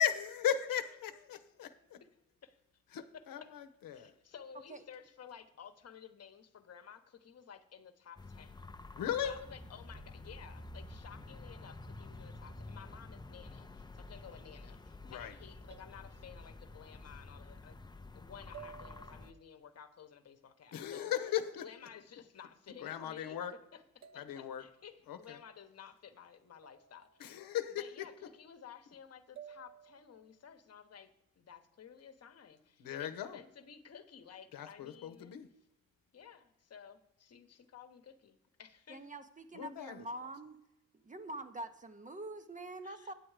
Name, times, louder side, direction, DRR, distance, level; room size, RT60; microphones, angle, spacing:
voice 1, 0.0-1.7 2.9-4.1 8.9-9.3 15.0-15.3 20.7-21.6 22.8-23.5 24.2-24.6 25.1-25.4 27.2-28.1 32.8-33.4 34.5-35.5 39.6-40.0, left 10 dB, 80° left, 10 dB, 0.9 m, -37 dB
voice 2, 3.1-3.5 3.9-8.6 9.2-17.8 18.1-21.1 21.6-23.4 23.7-27.4 27.7-31.1 31.4-35.3 36.1-39.1 42.8-43.1, left 8 dB, 45° left, 9 dB, 1.0 m, -54 dB
sound 1, 8.2-19.3, left 2 dB, 15° left, 0.5 m, -50 dB
sound 2, 15.7-17.0 18.5-19.6 21.3-22.3 24.0-25.1 26.6-27.5 29.4-30.4, right 9 dB, 55° right, 0.8 m, -57 dB
voice 3, 38.9-40.6 41.0-43.1, right 1 dB, 25° right, 9 dB, 0.7 m, -45 dB
9.6 x 7.7 x 4.8 m, 0.86 s
cardioid pair, 110°, 34 cm